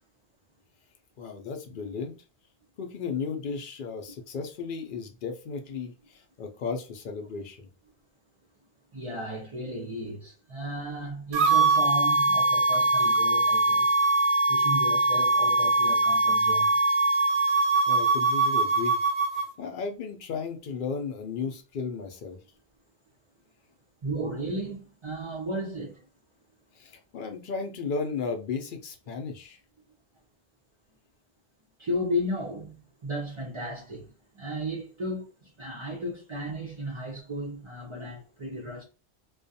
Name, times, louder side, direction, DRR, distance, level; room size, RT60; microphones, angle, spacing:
voice 1, 1.2-2.1 2.8-7.7 17.9-19.0 19.3-22.4 26.8-29.6, left 5 dB, 60° left, 0.6 m, -34 dB
voice 2, 8.9-14.0 14.5-16.7 24.0-26.0 31.8-34.1 34.3-38.8, equal, 45° right, 0.4 m, -34 dB
sound 1, 11.3-19.5, right 3 dB, 70° right, 0.8 m, -22 dB
2.4 x 2.2 x 2.6 m
omnidirectional pair, 1.2 m